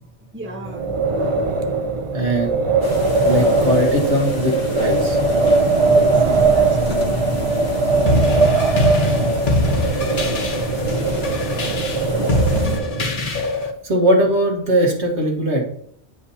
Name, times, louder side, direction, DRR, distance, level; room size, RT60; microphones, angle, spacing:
voice 1, 0.3-1.1 5.8-7.0 11.5-13.0, right 1 dB, 10° right, 1 dB, 0.9 m, -36 dB
Wind, 0.6-13.3, right 3 dB, 50° right, 0.4 m, -20 dB
voice 2, 2.1-2.6 3.2-5.2 13.8-15.6, right 1 dB, 70° right, 0 dB, 1.8 m, -19 dB
sound 1, 2.8-12.8, left 3 dB, 75° left, 1.8 m, -30 dB
sound 2, 8.1-13.7, left 1 dB, 45° left, 1.0 m, -22 dB
9.5 x 5.1 x 2.8 m, 0.66 s
omnidirectional pair, 1.2 m